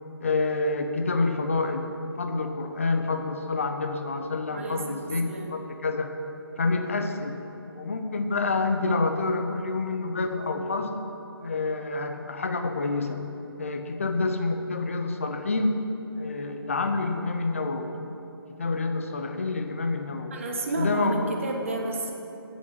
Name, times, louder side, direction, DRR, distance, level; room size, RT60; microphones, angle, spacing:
voice 1, 0.2-1.9 2.2-6.1 6.6-7.4 7.7-11.0 11.4-13.2 13.6-15.9 16.2-18.0 18.6-20.4 20.8-21.3, left 3 dB, 30° left, 6 dB, 0.7 m, -28 dB
voice 2, 4.5-5.5 7.7-7.8 20.3-22.1, right 2 dB, 30° right, 1 dB, 1.1 m, -32 dB
8.3 x 8.0 x 7.5 m, 2.9 s
figure-of-eight pair, 170°, 13 cm